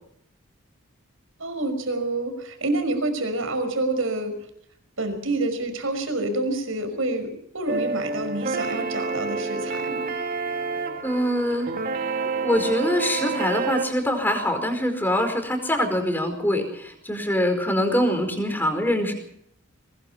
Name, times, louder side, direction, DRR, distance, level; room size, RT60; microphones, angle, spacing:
voice 1, 1.4-4.3 5.0-10.1, right 2 dB, 75° right, 8 dB, 5.6 m, -27 dB
sound 1, 7.7-13.9, right 4 dB, 40° right, 2.5 m, -28 dB
voice 2, 11.0-11.7 12.4-19.1, equal, 10° left, 5 dB, 4.9 m, -24 dB
23.0 x 20.5 x 5.7 m, 0.69 s
head